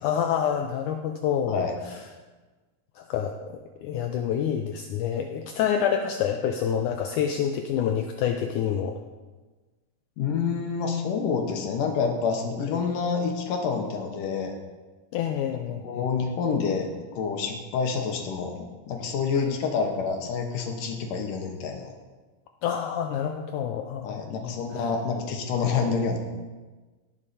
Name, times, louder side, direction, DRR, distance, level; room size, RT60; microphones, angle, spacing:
voice 1, 0.0-2.0 3.0-9.0 12.7-12.8 15.1-16.1 19.4-19.6 22.6-24.9, left 8 dB, 90° left, 5 dB, 1.7 m, -28 dB
voice 2, 10.2-14.5 15.8-21.9 24.0-26.2, left 5 dB, 70° left, 3 dB, 2.5 m, -28 dB
17.0 x 7.3 x 4.2 m, 1.3 s
omnidirectional pair, 4.3 m